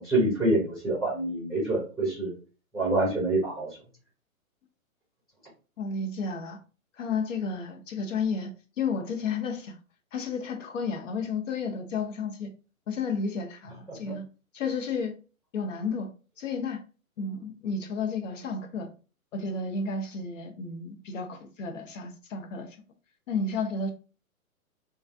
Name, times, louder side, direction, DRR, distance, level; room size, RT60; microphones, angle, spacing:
voice 1, 0.0-2.3 2.7-3.7, right 2 dB, ahead, 1.2 m, -26 dB
voice 2, 5.8-6.6 7.0-9.8 10.1-12.5 12.9-14.2 14.5-15.1 15.5-16.1 16.4-16.8 17.2-18.9 19.3-22.8 23.3-23.9, left 4 dB, 60° left, 0.9 m, -32 dB
3.1 x 2.4 x 2.6 m
hypercardioid pair, 125°, 42 cm